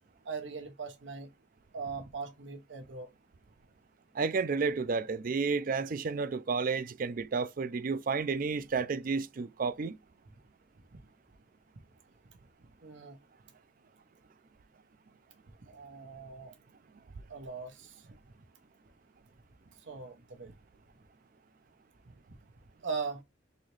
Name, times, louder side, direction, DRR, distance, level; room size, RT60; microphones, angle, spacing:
voice 1, 0.2-1.3 1.7-3.1 12.8-13.2 15.6-16.5 17.3-18.0 19.9-20.5 22.8-23.2, right 4 dB, 85° right, 1.0 m, -40 dB
voice 2, 4.1-10.0, right 4 dB, 50° right, 0.4 m, -31 dB
4.0 x 2.9 x 3.2 m
head